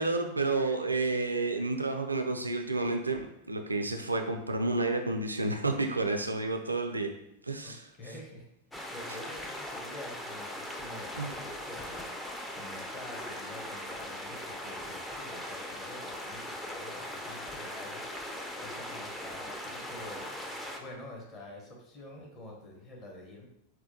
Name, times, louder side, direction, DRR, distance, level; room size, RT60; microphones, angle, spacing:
voice 1, 0.0-7.1 7.5-7.8 11.2-11.3, right 2 dB, 80° right, 5 dB, 0.3 m, -30 dB
voice 2, 7.6-8.5 8.7-20.3 20.8-23.4, left 1 dB, 30° left, -1 dB, 0.9 m, -47 dB
sound 1, 8.7-20.8, left 1 dB, 5° left, 0.4 m, -40 dB
4.3 x 2.2 x 2.7 m, 0.83 s
figure-of-eight pair, 90°, 0 cm